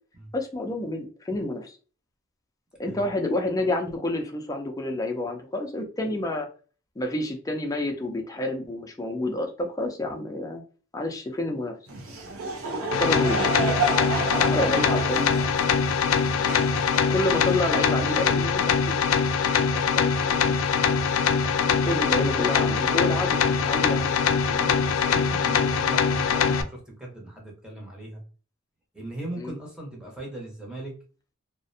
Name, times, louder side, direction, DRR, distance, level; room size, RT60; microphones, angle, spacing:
voice 1, 0.3-1.8 2.8-6.5 7.0-10.6 10.9-11.7 12.9-13.4 14.4-15.3 17.1-19.0 19.7-20.4 21.6-24.1 29.4-29.6, left 1 dB, 15° left, 3 dB, 0.4 m, -29 dB
Laughter / Crowd, 11.9-17.6, right 3 dB, 85° right, 0.5 m, -30 dB
sound 1, 12.9-26.6, left 6 dB, 90° left, 0.3 m, -23 dB
voice 2, 21.8-23.4 24.5-28.2 28.9-30.9, right 1 dB, 5° right, -2 dB, 0.8 m, -39 dB
2.5 x 2.0 x 2.6 m, 0.37 s
head